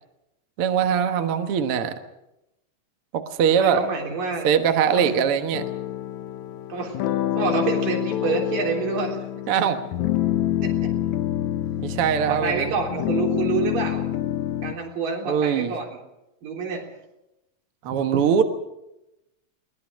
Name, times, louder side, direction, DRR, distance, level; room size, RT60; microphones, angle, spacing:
voice 1, 0.6-1.9 3.1-3.9 4.4-5.6 9.5-9.8 11.8-12.8 15.2-15.7 17.8-18.4, right 8 dB, 55° right, 1.7 m, -21 dB
voice 2, 3.6-4.5 4.9-5.3 6.7-7.0 7.3-9.2 10.6-10.9 12.3-14.0 14.6-16.0 16.4-16.9 18.1-18.2, right 4 dB, 70° right, 5.2 m, -27 dB
sound 1, 5.5-14.7, left 12 dB, 70° left, 1.9 m, -27 dB
22.5 x 19.0 x 6.4 m
omnidirectional pair, 4.0 m